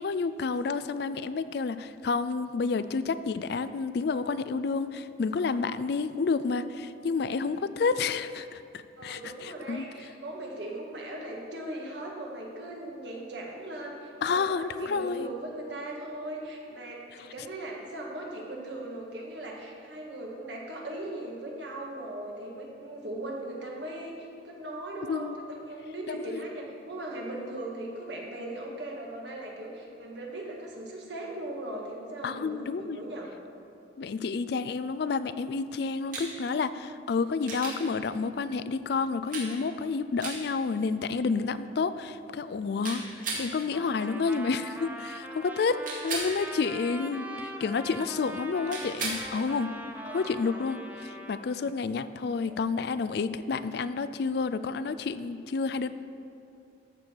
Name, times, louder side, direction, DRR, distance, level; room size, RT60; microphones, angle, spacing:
voice 1, 0.0-8.6 9.0-9.8 14.2-15.3 25.1-25.4 26.1-26.4 32.2-33.0 34.0-43.0 43.3-49.7 50.1-55.9, left 4 dB, 60° left, 13 dB, 0.3 m, -30 dB
voice 2, 9.0-25.3 25.6-33.3 50.0-50.6 52.3-52.5, right 1 dB, 65° right, -1 dB, 1.7 m, -39 dB
sound 1, 36.1-36.3 37.5-37.8 39.3-39.5 40.2-40.4 42.8-43.5 45.8-46.3 48.7-49.2 51.5-51.6, right 3 dB, 45° right, 2.1 m, -34 dB
Trumpet, 43.7-51.4, right 1 dB, 10° right, 0.6 m, -42 dB
13.5 x 6.8 x 4.5 m, 2.5 s
head